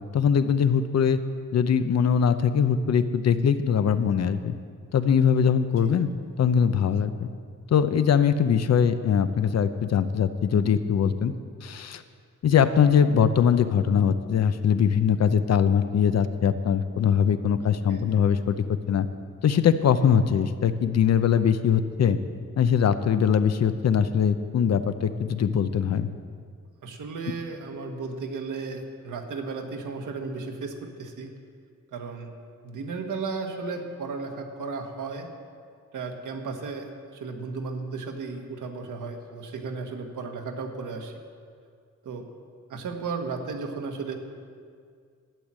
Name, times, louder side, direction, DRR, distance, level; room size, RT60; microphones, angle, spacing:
voice 1, 0.1-1.2 1.5-4.5 4.9-6.1 6.4-7.3 7.7-11.3 11.6-12.0 12.4-19.1 19.4-22.2 22.6-26.1, left 7 dB, 60° left, 11 dB, 0.7 m, -22 dB
voice 2, 26.8-31.3 31.9-32.3 32.6-35.3 35.9-41.1 42.0-42.3 42.7-44.1, right 4 dB, 90° right, 4 dB, 1.5 m, -34 dB
12.0 x 9.8 x 7.5 m, 2.2 s
wide cardioid pair, 170°, 30 cm